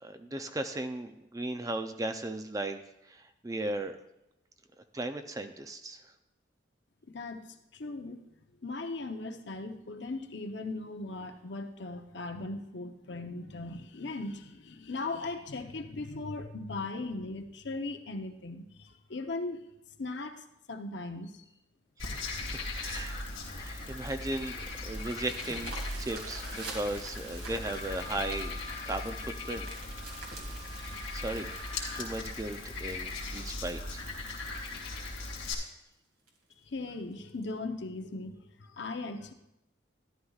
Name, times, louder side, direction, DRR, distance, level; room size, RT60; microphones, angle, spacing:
voice 1, 0.0-2.8 3.1-4.0 4.9-6.0 22.5-23.2 23.5-24.6 24.8-25.7 26.0-28.6 28.8-29.7 31.1-31.5 31.9-34.0, right 1 dB, 15° right, 8 dB, 0.4 m, -36 dB
voice 2, 7.1-8.3 8.6-19.6 20.0-21.4 22.2-22.3 36.6-39.3, left 3 dB, 65° left, 6 dB, 0.8 m, -38 dB
Frog, 22.0-35.5, left 2 dB, 80° left, 2.7 m, -39 dB
sound 1, 23.8-34.3 34.8-34.9 35.4-35.5 35.8-35.9 36.3-36.5 37.4-37.5, right 3 dB, 85° right, 2.1 m, -48 dB
Wind instrument woodwind instrument, 27.6-32.1, left 4 dB, 55° right, 2.2 m, -48 dB
13.0 x 11.0 x 2.4 m, 0.87 s
head